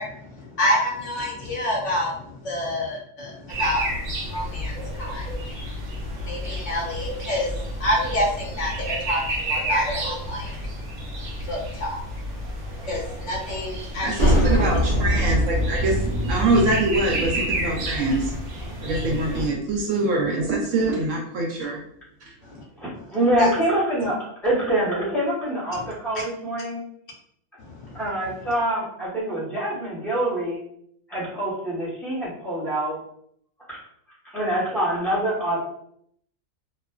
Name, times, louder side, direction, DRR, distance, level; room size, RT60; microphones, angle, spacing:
voice 1, 0.0-10.5 11.4-12.0 12.8-14.4 19.3-19.4 22.5-22.6 23.4-23.5 27.6-28.0, equal, 65° left, -2 dB, 0.9 m, -28 dB
sound 1, 3.5-19.5, right 1 dB, 90° right, 1.1 m, -31 dB
voice 2, 14.0-18.4 18.8-21.8, right 2 dB, 70° right, -1 dB, 0.9 m, -24 dB
sound 2, 14.2-19.5, equal, 35° left, 0.7 m, -24 dB
voice 3, 22.8-26.8 27.9-30.6 31.1-33.0 33.7-33.8 34.3-35.7, right 1 dB, ahead, -8 dB, 0.8 m, -25 dB
2.4 x 2.3 x 2.2 m, 0.68 s
omnidirectional pair, 1.4 m